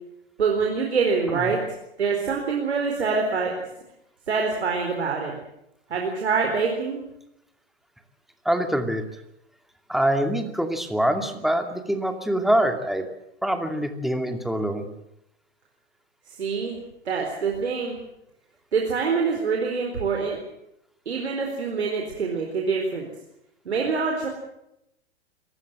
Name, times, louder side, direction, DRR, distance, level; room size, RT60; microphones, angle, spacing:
voice 1, 0.4-1.6 2.0-3.5 4.3-5.3 5.9-7.0 16.4-16.7 17.1-18.0 18.7-20.4 21.1-23.1 23.7-24.3, right 5 dB, 75° right, 1 dB, 4.3 m, -25 dB
voice 2, 8.4-9.0 9.9-13.1 13.4-14.9, right 1 dB, ahead, 6 dB, 2.5 m, -24 dB
27.0 x 16.0 x 7.7 m, 0.82 s
figure-of-eight pair, 110°, 33 cm